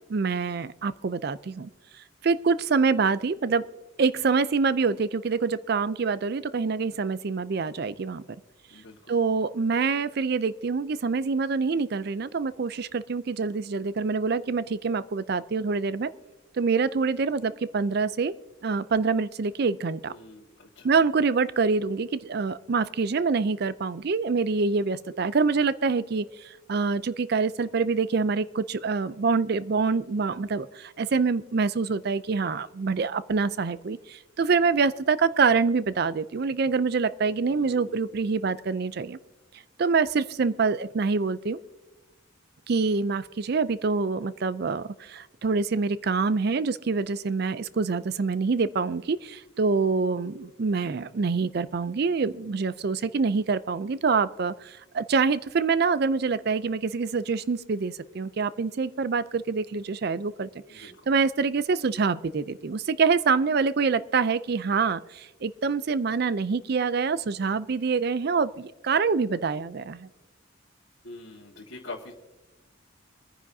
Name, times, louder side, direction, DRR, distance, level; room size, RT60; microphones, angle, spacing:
voice 1, 0.1-1.7 2.2-3.7 4.0-8.2 9.1-16.1 16.6-18.3 18.6-20.1 20.8-39.2 39.8-41.6 42.7-60.5 60.7-70.1, right 4 dB, 50° right, 16 dB, 0.4 m, -26 dB
voice 2, 20.1-21.0 37.4-38.0 60.7-61.0 71.0-72.1, left 2 dB, 70° left, -3 dB, 1.6 m, -44 dB
24.0 x 9.9 x 2.7 m, 1.1 s
head